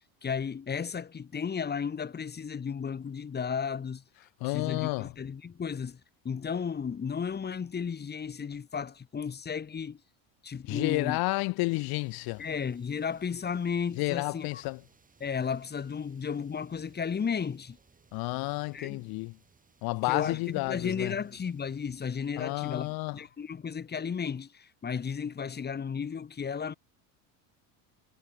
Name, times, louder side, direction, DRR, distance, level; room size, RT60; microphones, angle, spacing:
voice 1, 0.2-4.0 4.4-6.0 6.2-10.0 10.4-11.2 12.4-14.6 15.2-17.8 18.7-19.1 20.0-26.7, left 6 dB, 25° left, 2.8 m, -34 dB
voice 2, 4.4-5.1 10.7-12.4 14.0-14.8 18.1-19.3 19.8-21.1 22.4-23.2, left 23 dB, 65° left, 1.7 m, -31 dB
sound 1, 11.7-23.0, right 5 dB, 20° right, 7.7 m, -64 dB
supercardioid pair, 120°, 40 cm